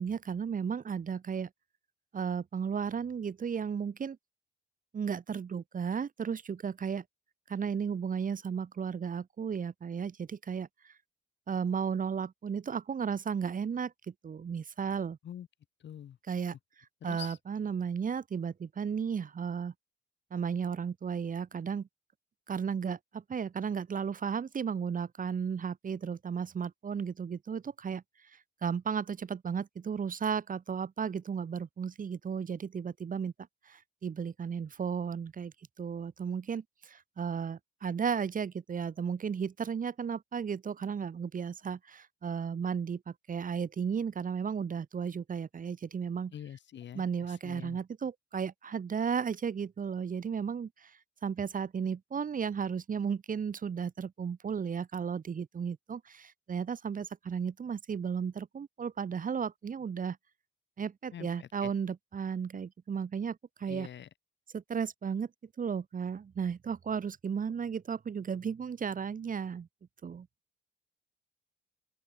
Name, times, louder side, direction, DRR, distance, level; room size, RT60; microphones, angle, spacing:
voice 1, 0.0-1.5 2.1-4.2 4.9-7.0 7.5-10.9 11.5-15.2 16.3-16.6 17.0-19.7 20.3-21.9 22.5-33.3 33.7-46.3 46.9-60.2 60.8-63.9 64.5-65.3 65.6-69.7 70.0-70.3, right 6 dB, 45° right, 2.0 m, -34 dB
voice 2, 15.8-16.2 17.0-17.4 46.3-47.8 61.1-61.7 63.7-64.1, left 10 dB, 65° left, 6.1 m, -45 dB
open air
cardioid pair, 90°, 20 cm